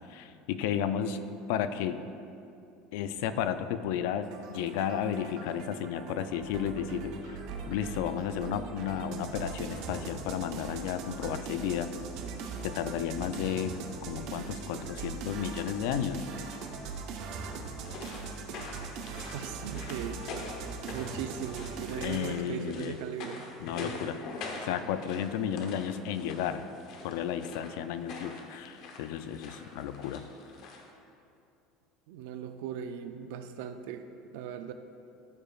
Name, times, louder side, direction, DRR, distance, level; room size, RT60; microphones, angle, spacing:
voice 1, 0.1-1.2 1.5-2.0 2.9-7.4 7.7-11.9 12.6-13.8 14.1-16.3 22.0-23.0 23.6-24.2 24.6-26.7 27.0-30.3, left 9 dB, 75° left, 11 dB, 0.3 m, -33 dB
sound 1, 4.2-22.3, right 5 dB, 60° right, 0.8 m, -40 dB
sound 2, 17.6-30.9, left 3 dB, 50° left, 0.9 m, -45 dB
voice 2, 19.1-20.2 20.8-23.4 32.1-34.0 34.3-34.7, right 8 dB, 75° right, 8 dB, 0.4 m, -38 dB
13.0 x 5.1 x 2.4 m, 2.6 s
cardioid pair, 145°, 0 cm